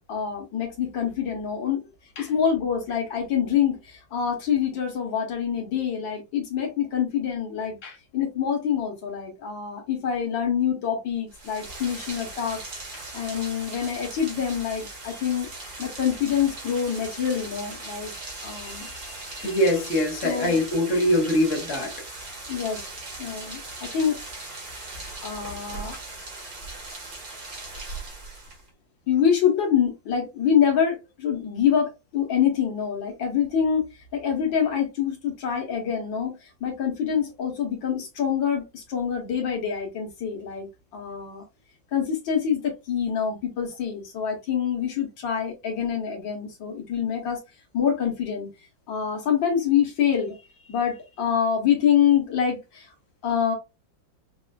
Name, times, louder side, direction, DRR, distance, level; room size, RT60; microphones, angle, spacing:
voice 1, 0.1-1.8 2.2-7.8 8.1-12.6 13.1-15.5 15.8-19.6 20.2-20.6 22.5-22.8 23.2-24.2 25.2-26.0 29.1-33.9 34.1-41.4 41.9-47.4 47.7-48.5 48.9-50.4 50.7-52.9 53.2-53.5, left 8 dB, 75° left, 1.7 m, -26 dB
Rain, 11.3-28.7, right 2 dB, 50° right, 1.9 m, -39 dB
voice 2, 19.4-21.9, left 1 dB, 45° left, 1.3 m, -23 dB
5.3 x 2.4 x 2.3 m
omnidirectional pair, 2.1 m